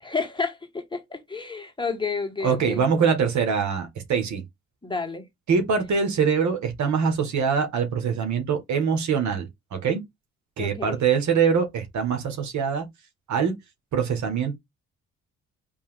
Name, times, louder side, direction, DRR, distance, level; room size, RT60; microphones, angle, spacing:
voice 1, 0.0-2.8 4.8-5.2 10.6-11.0, left 4 dB, 15° left, 1.6 m, -30 dB
voice 2, 2.4-4.4 5.5-10.0 10.6-12.8 13.3-13.5 13.9-14.6, right 6 dB, 70° right, 1.6 m, -23 dB
4.6 x 3.0 x 3.8 m
cardioid pair, 90°, 30 cm